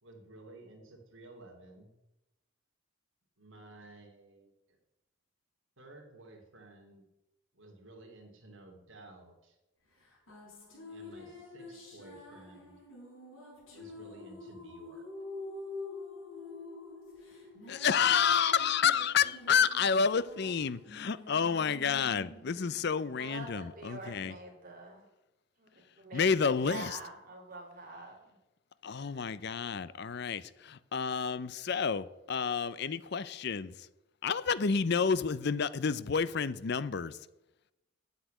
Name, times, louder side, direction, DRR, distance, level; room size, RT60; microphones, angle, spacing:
voice 1, 0.0-1.9 3.4-4.8 5.8-7.0 7.5-9.6 10.9-12.7 13.7-15.0, right 2 dB, 65° right, 2.8 m, -54 dB
sound 1, 10.0-23.6, left 2 dB, 70° left, 5.4 m, -47 dB
voice 2, 17.7-24.3 26.1-27.0 28.8-33.9 34.2-37.2, left 6 dB, 50° left, 0.5 m, -30 dB
voice 3, 23.2-25.0 25.6-28.3, right 3 dB, 40° right, 2.7 m, -46 dB
8.5 x 8.1 x 9.0 m
head